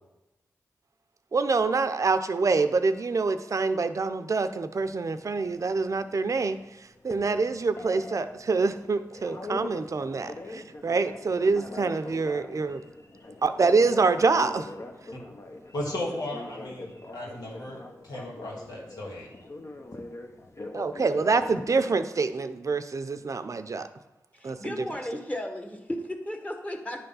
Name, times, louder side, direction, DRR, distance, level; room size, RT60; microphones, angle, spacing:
voice 1, 1.3-6.6 7.0-12.8 13.4-14.7 20.7-23.9 24.4-24.6, right 4 dB, 55° right, 10 dB, 0.6 m, -26 dB
Telephone, 4.8-21.9, left 2 dB, 45° left, 1.0 m, -43 dB
voice 2, 15.7-17.8 18.0-19.3, left 1 dB, 85° left, -3 dB, 1.9 m, -35 dB
voice 3, 24.3-27.0, left 1 dB, 20° left, 4 dB, 1.4 m, -35 dB
9.7 x 3.4 x 5.6 m, 1.0 s
cardioid pair, 45°, 7 cm